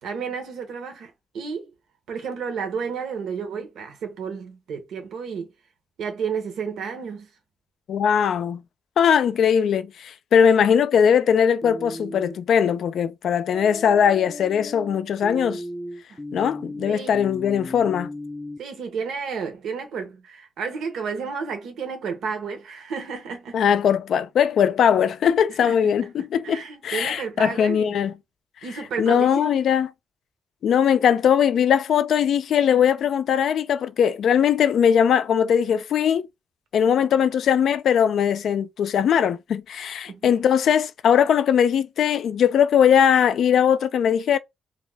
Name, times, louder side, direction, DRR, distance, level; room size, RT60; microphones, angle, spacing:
voice 1, 0.0-1.7 2.1-5.5 6.0-7.3 16.1-16.2 16.9-17.2 18.6-23.6 25.6-25.9 26.4-27.9 28.6-29.6 36.8-37.1 40.1-40.2, right 6 dB, 85° right, 0.8 m, -32 dB
voice 2, 7.9-8.6 9.0-15.6 16.3-18.1 23.5-28.1 29.0-29.9 30.6-36.3 36.7-44.4, left 8 dB, 75° left, 0.3 m, -20 dB
sound 1, 11.6-12.4 13.5-18.6, left 1 dB, 5° left, 0.5 m, -36 dB
2.5 x 2.2 x 3.3 m
cardioid pair, 90°, 0 cm